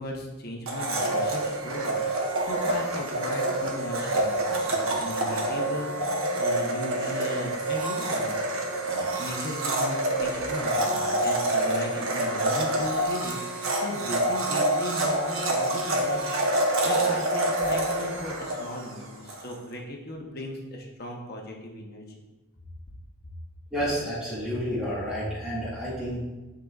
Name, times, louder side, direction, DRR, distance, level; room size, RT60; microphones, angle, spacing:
voice 1, 0.0-22.2, equal, 45° left, 0 dB, 0.9 m, -37 dB
Domestic sounds home sounds, 0.7-19.4, right 1 dB, 75° right, 1.0 m, -27 dB
voice 2, 23.7-26.2, equal, 5° right, -10 dB, 2.0 m, -30 dB
10.5 x 3.9 x 2.4 m, 1.2 s
head